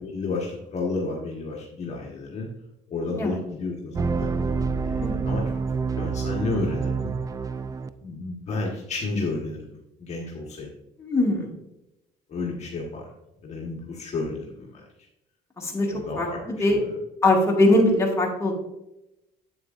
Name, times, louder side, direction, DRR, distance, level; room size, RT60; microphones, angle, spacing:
voice 1, 0.0-2.5 2.9-4.3 4.8-5.5 6.0-7.1 8.0-9.7 10.0-10.7 12.3-13.1 13.4-14.8 15.9-16.8, left 3 dB, 40° left, -2 dB, 1.4 m, -31 dB
sound 1, 3.9-7.9, right 5 dB, 20° right, 0.4 m, -27 dB
voice 2, 11.0-11.5 15.6-16.8 17.2-18.5, left 1 dB, 15° left, -2 dB, 2.1 m, -22 dB
8.0 x 7.8 x 2.5 m, 0.89 s
cardioid pair, 110°, 17 cm